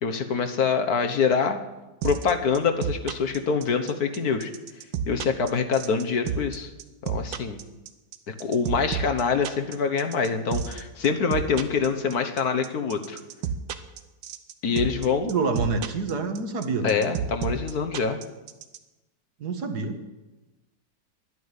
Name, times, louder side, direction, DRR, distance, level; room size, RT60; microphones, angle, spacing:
voice 1, 0.0-1.6 2.0-4.5 5.1-6.7 7.0-7.6 8.3-13.2 14.6-15.3 16.8-18.2, left 5 dB, 60° left, 6 dB, 1.5 m, -25 dB
sound 1, 2.0-18.8, right 8 dB, 90° right, 1.6 m, -30 dB
voice 2, 15.3-17.0 19.4-20.0, right 4 dB, 60° right, 6 dB, 1.8 m, -27 dB
11.5 x 10.5 x 9.7 m, 1.1 s
omnidirectional pair, 2.0 m